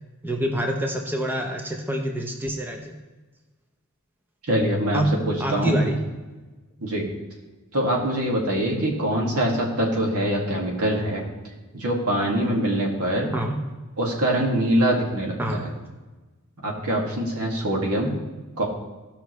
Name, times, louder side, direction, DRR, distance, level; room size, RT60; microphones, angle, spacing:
voice 1, 0.2-2.9 4.9-5.9 13.3-13.5 15.4-15.7, right 1 dB, 10° right, 2 dB, 0.8 m, -26 dB
voice 2, 4.5-5.0 5.3-5.9 6.8-7.1 7.7-11.2 11.7-13.3 14.0-15.7 16.6-18.2 18.6-18.7, right 1 dB, 85° right, -1 dB, 2.1 m, -24 dB
16.0 x 5.8 x 3.2 m, 1.2 s
head